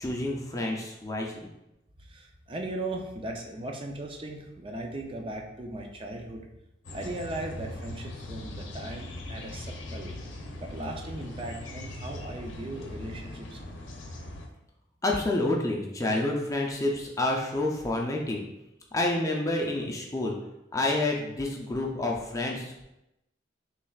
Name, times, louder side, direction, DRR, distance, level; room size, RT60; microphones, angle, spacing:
voice 1, 0.0-1.5 15.0-18.4 18.9-20.4 20.7-22.8, left 2 dB, 15° left, 0 dB, 0.5 m, -28 dB
voice 2, 2.0-6.5 6.9-10.1 10.6-13.9, right 1 dB, 30° right, 2 dB, 0.5 m, -38 dB
sound 1, 6.8-14.5, left 1 dB, 90° left, 0.7 m, -40 dB
5.9 x 3.3 x 2.4 m, 0.89 s
head